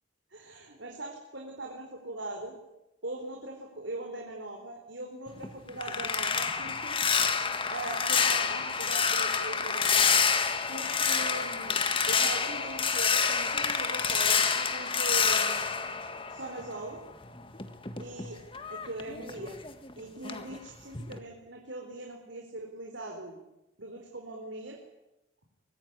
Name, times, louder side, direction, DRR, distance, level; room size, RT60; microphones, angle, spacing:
voice 1, 0.3-2.5 3.0-7.0 7.7-10.1 10.7-11.8 12.1-15.6 16.3-17.0 18.0-18.4 18.7-19.5 19.9-23.4 23.8-24.8, right 2 dB, 75° right, 1 dB, 4.5 m, -40 dB
sound 1, 5.3-16.9 17.2-19.9 20.2-20.6 20.9-21.2, left 6 dB, 25° left, 1.8 m, -28 dB
24.0 x 20.5 x 9.9 m, 0.93 s
head